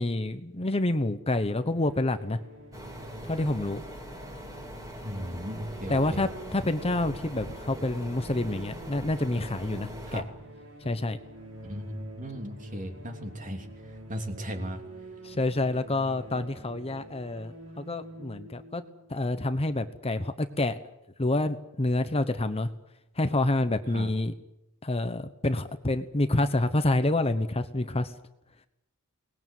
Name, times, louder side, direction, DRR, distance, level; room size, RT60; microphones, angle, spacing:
voice 1, 0.0-2.4 3.2-3.8 5.9-10.2 10.8-11.2 15.2-18.8 19.1-20.7 21.2-22.7 23.2-24.3 24.8-28.1, left 2 dB, 25° left, 10 dB, 1.1 m, -28 dB
sound 1, 1.4-20.0, right 1 dB, 80° right, 6.9 m, -47 dB
sound 2, 2.7-10.2, equal, 15° right, 3.7 m, -43 dB
voice 2, 5.0-6.3 10.1-10.2 11.6-13.7 14.1-14.8 23.9-24.1, equal, 35° right, 5 dB, 3.2 m, -36 dB
23.5 x 19.5 x 9.3 m, 0.84 s
head